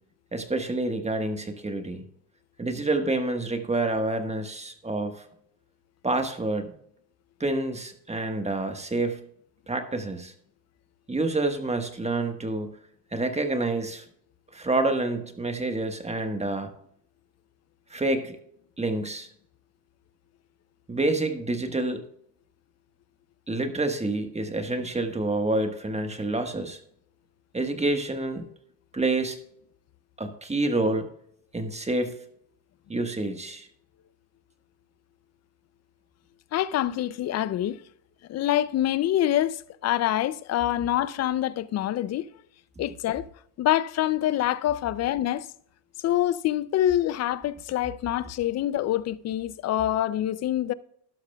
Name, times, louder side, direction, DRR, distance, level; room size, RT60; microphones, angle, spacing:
voice 1, 0.3-2.0 2.6-5.2 6.0-6.7 7.4-9.2 9.7-10.3 11.1-12.7 13.1-14.0 14.5-16.7 17.9-18.4 18.8-19.3 20.9-22.0 23.5-26.8 27.5-28.4 28.9-29.4 30.2-31.1 31.5-32.1 32.9-33.7, right 2 dB, 15° right, 1.3 m, -28 dB
voice 2, 36.5-37.8 38.3-42.3 42.8-43.3 43.6-45.5 46.0-50.7, left 12 dB, 35° left, 0.4 m, -26 dB
12.0 x 11.5 x 2.3 m
supercardioid pair, 95°, 50 cm